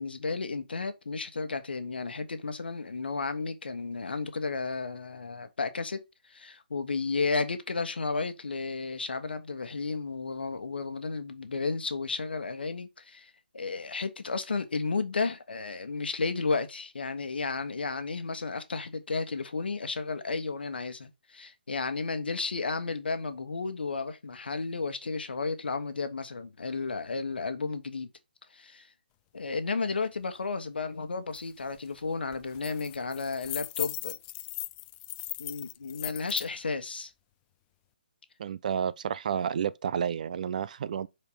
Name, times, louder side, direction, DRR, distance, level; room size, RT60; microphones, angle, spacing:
voice 1, 0.0-28.1 28.5-28.9 29.3-34.2 35.4-37.1, left 4 dB, 70° left, 1.4 m, -33 dB
sound 1, 31.3-31.4 31.8-32.0 32.3-36.5, left 18 dB, 20° left, 0.4 m, -38 dB
voice 2, 38.4-41.1, right 8 dB, 50° right, 0.5 m, -30 dB
5.8 x 4.5 x 4.9 m
figure-of-eight pair, 140°, 6 cm